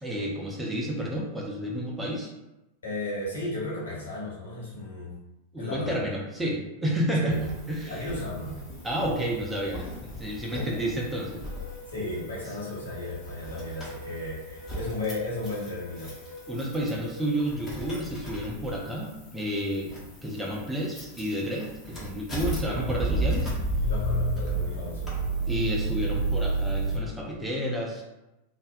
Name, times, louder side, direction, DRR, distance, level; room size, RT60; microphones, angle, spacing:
voice 1, 0.0-2.3 5.5-8.0 8.4-8.6 8.8-11.4 16.5-19.9 20.2-23.5 25.5-28.0, equal, 10° right, -3 dB, 0.5 m, -30 dB
voice 2, 2.8-5.2 5.6-6.1 7.2-7.4 7.8-8.7 10.5-10.8 11.9-16.1 22.6-23.2 23.9-25.1, left 2 dB, 70° left, -7 dB, 1.1 m, -35 dB
sound 1, 7.3-27.0, right 2 dB, 15° left, 0.9 m, -33 dB
sound 2, 11.4-17.4, left 1 dB, 90° right, 0.3 m, -45 dB
2.5 x 2.2 x 2.3 m, 0.97 s
figure-of-eight pair, 90°, 0 cm